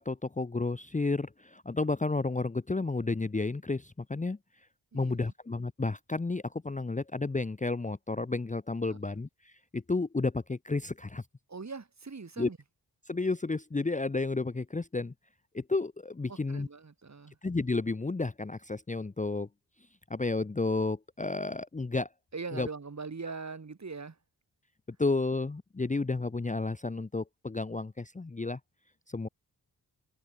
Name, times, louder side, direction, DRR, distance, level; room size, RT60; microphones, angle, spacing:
voice 1, 0.0-4.4 4.9-11.2 12.4-12.5 13.1-15.1 15.5-16.7 17.4-19.5 20.1-22.1 22.5-22.7 25.0-28.6 29.1-29.3, left 3 dB, 20° left, 0.8 m, -32 dB
voice 2, 4.9-5.3 11.5-12.6 16.3-17.4 22.3-24.2, right 4 dB, 40° right, 2.4 m, -41 dB
cardioid pair, 45°, 41 cm